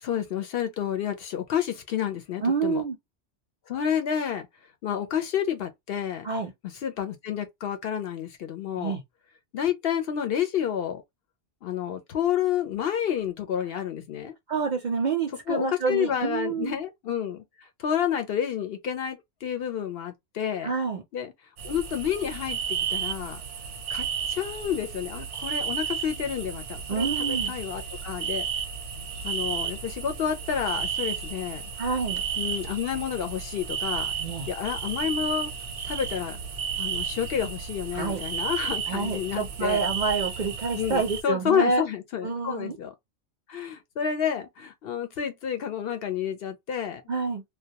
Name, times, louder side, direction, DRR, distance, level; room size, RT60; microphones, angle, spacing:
voice 1, 0.0-2.8 3.7-4.5 4.8-6.3 6.8-9.0 9.5-11.0 11.6-14.3 15.5-20.7 21.1-21.3 21.6-23.4 23.9-28.5 29.2-31.6 32.4-34.1 34.5-35.5 35.8-36.4 36.8-39.8 40.8-42.9 43.5-47.0, left 9 dB, 65° left, 0.7 m, -29 dB
voice 2, 2.4-3.0 6.2-6.5 8.8-9.0 14.5-16.8 20.6-21.0 26.9-27.5 31.8-32.2 34.2-34.5 37.9-38.2 38.9-41.8 42.2-42.8 47.1-47.4, right 5 dB, 55° right, 0.6 m, -28 dB
sound 1, 21.6-41.2, right 7 dB, 85° right, 0.9 m, -33 dB
2.2 x 2.2 x 2.7 m
omnidirectional pair, 1.2 m